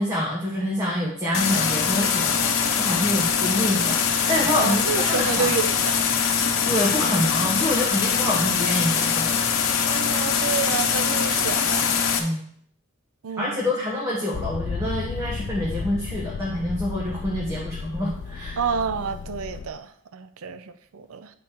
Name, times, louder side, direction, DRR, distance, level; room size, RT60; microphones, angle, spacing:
voice 1, 0.0-5.5 6.6-9.4 12.2-12.4 13.4-18.6, left 1 dB, 15° right, -5 dB, 1.2 m, -26 dB
sound 1, 1.3-12.2, left 6 dB, 80° left, 1.0 m, -23 dB
voice 2, 4.5-6.0 9.9-12.0 13.2-13.8 17.5-17.6 18.6-21.3, right 6 dB, 85° right, 11 dB, 0.5 m, -29 dB
Motor vehicle (road), 14.3-19.7, left 5 dB, 55° left, 0.4 m, -33 dB
9.3 x 4.2 x 4.6 m, 0.65 s
head